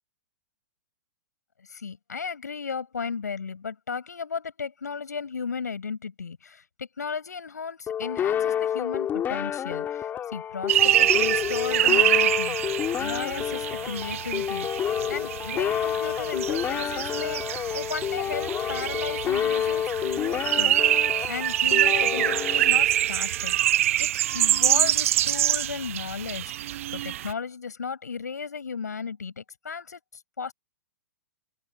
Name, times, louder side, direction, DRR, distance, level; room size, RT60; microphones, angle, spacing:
voice 1, 1.7-12.6 13.0-14.7 15.1-17.4 17.7-24.1 24.3-26.5 26.9-30.0 30.4-30.5, left 5 dB, 70° left, 7.6 m, -35 dB
sound 1, 7.9-23.2, left 9 dB, 20° left, 5.1 m, -29 dB
sound 2, 10.7-27.3, right 13 dB, 50° right, 0.5 m, -25 dB
open air
figure-of-eight pair, 110°, 9 cm